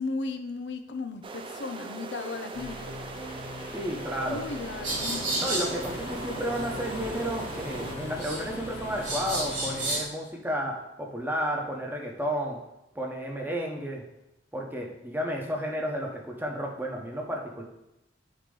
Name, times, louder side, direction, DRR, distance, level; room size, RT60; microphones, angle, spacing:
voice 1, 0.0-2.8 4.3-5.5, left 3 dB, 65° left, 7 dB, 0.5 m, -35 dB
sound 1, 1.2-8.0, right 3 dB, 30° right, 0.4 m, -40 dB
sound 2, 2.5-10.0, left 1 dB, 30° left, 0.9 m, -42 dB
voice 2, 3.7-4.4 5.4-12.6 12.9-14.0 14.5-17.6, equal, 10° right, 0 dB, 1.0 m, -32 dB
sound 3, 4.8-10.0, right 1 dB, 75° right, 1.9 m, -33 dB
6.8 x 3.0 x 5.3 m, 0.89 s
head